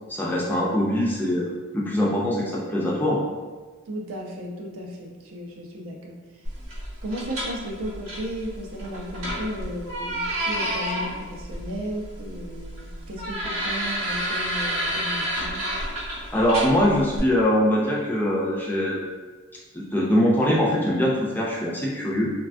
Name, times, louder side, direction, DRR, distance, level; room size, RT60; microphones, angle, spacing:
voice 1, 0.1-3.2 16.3-19.0 19.7-22.3, equal, 10° left, -4 dB, 0.3 m, -22 dB
voice 2, 3.9-6.5 7.0-15.7, equal, 70° right, 0 dB, 0.5 m, -35 dB
sound 1, 6.5-17.2, equal, 90° right, 1.0 m, -30 dB
3.2 x 2.2 x 2.4 m, 1.4 s
head